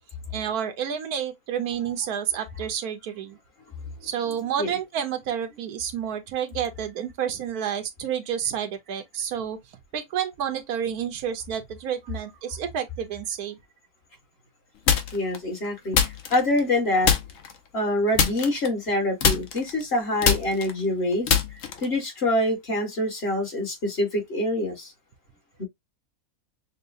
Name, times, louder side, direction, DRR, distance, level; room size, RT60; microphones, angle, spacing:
voice 1, 0.3-3.4 4.0-9.6 9.9-13.6, right 9 dB, 80° right, 1.3 m, -30 dB
sound 1, 14.9-15.4 15.9-16.8 17.0-17.6 18.1-18.9 19.2-22.0, left 7 dB, 65° left, 1.2 m, -23 dB
voice 2, 15.1-16.0 16.3-17.1 17.7-21.4 21.8-24.9 25.6-25.7, left 1 dB, 45° left, 1.8 m, -25 dB
6.5 x 2.3 x 2.5 m
omnidirectional pair, 1.6 m